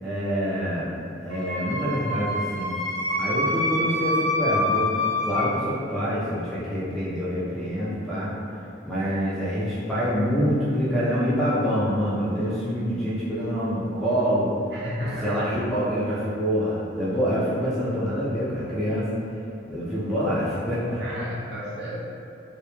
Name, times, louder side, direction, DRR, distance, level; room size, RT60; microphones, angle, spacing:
voice 1, 0.0-0.9 1.2-2.8 3.2-4.9 5.3-8.3 8.8-14.5 15.0-19.1 19.7-21.0, equal, ahead, -11 dB, 0.3 m, -26 dB
Wind instrument woodwind instrument, 1.3-5.5, left 1 dB, 80° right, 1.0 m, -26 dB
voice 2, 14.7-15.6 21.0-22.0, equal, 60° right, -7 dB, 0.5 m, -33 dB
2.1 x 2.0 x 2.8 m, 2.5 s
head